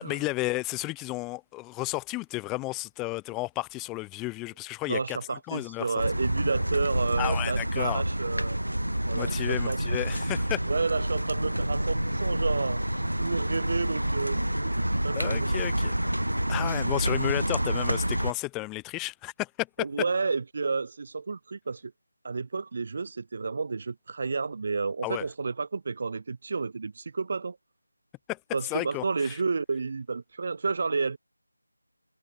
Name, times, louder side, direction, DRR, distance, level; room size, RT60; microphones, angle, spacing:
voice 1, 0.0-5.9 7.2-8.0 9.1-10.6 15.2-15.9 16.5-19.9 25.0-25.2 28.3-28.4 28.7-29.4, left 21 dB, 5° left, 0.8 m, -32 dB
voice 2, 4.9-8.6 9.1-9.8 10.7-14.8 15.0-15.6 19.8-21.9 22.2-27.6 28.5-31.2, right 4 dB, 35° right, 0.5 m, -31 dB
sound 1, 6.0-18.3, right 1 dB, 80° right, 0.6 m, -28 dB
figure-of-eight pair, 165°, 0 cm